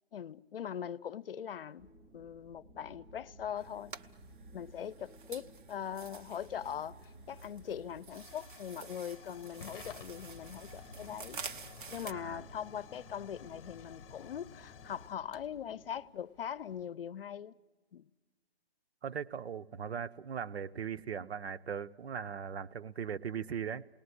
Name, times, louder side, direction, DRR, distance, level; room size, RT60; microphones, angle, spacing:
voice 1, 0.1-3.9 4.5-11.4 11.9-17.6 17.9-18.0, left 9 dB, 60° left, 0.7 m, -41 dB
sound 1, 1.8-16.1, right 1 dB, 25° right, 2.0 m, -57 dB
sound 2, 3.6-12.1, right 5 dB, 50° right, 0.9 m, -49 dB
Hiss / Fire / Tick, 6.5-16.9, left 8 dB, 25° left, 1.5 m, -55 dB
voice 2, 12.1-12.5 19.0-23.9, right 7 dB, 80° right, 0.8 m, -39 dB
28.5 x 19.5 x 9.7 m
hypercardioid pair, 170°, 31 cm